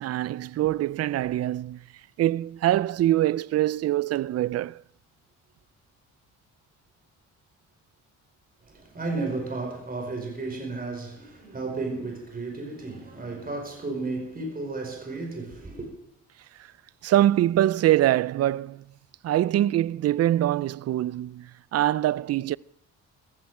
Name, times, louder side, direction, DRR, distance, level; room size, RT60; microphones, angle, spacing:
voice 1, 0.0-1.8 2.2-4.8 16.6-16.7 17.0-18.9 19.2-22.6, right 13 dB, 55° right, 0.5 m, -24 dB
voice 2, 8.7-15.9, right 3 dB, 30° right, 5.0 m, -33 dB
15.0 x 15.0 x 4.9 m
cardioid pair, 90°, 30 cm